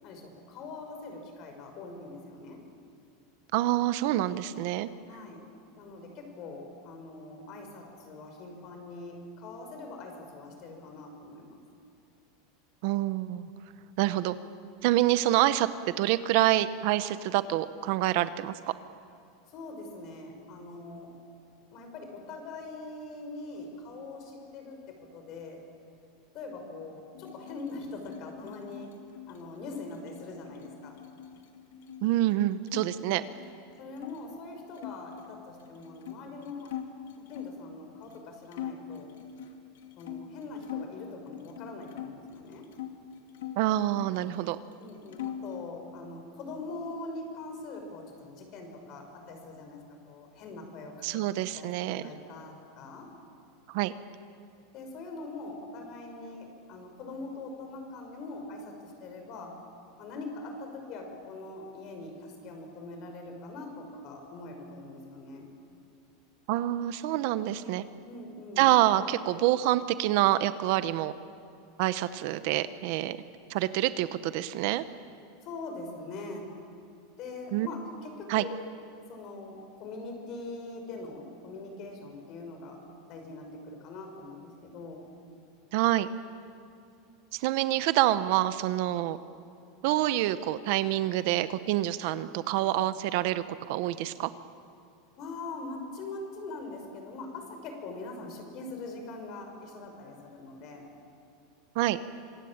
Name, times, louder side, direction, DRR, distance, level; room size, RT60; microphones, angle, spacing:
voice 1, 0.0-2.6 5.1-5.4 5.8-11.6 19.5-21.1 21.7-25.6 26.3-28.9 29.3-31.0 33.8-36.7 37.2-39.1 40.0-42.7 44.8-49.8 50.1-51.1 51.5-53.1 54.7-59.5 60.0-65.5 68.1-68.7 75.4-76.5 77.2-78.6 79.1-82.8 83.1-85.0 95.2-100.9, left 3 dB, 40° left, 4 dB, 5.7 m, -42 dB
voice 2, 3.5-4.9 12.8-13.5 14.0-14.3 14.8-15.7 16.0-18.5 32.0-33.2 43.6-44.6 51.0-52.0 53.7-53.9 66.5-67.8 68.6-71.1 71.8-73.2 73.5-74.8 77.5-77.7 78.3-78.5 85.7-86.1 87.3-89.2 89.8-94.3 101.7-102.0, right 14 dB, 50° right, 13 dB, 0.9 m, -26 dB
sound 1, 27.1-32.9 33.2-34.2 34.7-37.6 38.1-38.2 38.5-40.9 41.3-42.9 43.3-44.5 44.7-45.6, left 10 dB, 90° left, 2.6 m, -43 dB
26.0 x 22.5 x 8.8 m, 2.5 s
supercardioid pair, 165°, 0 cm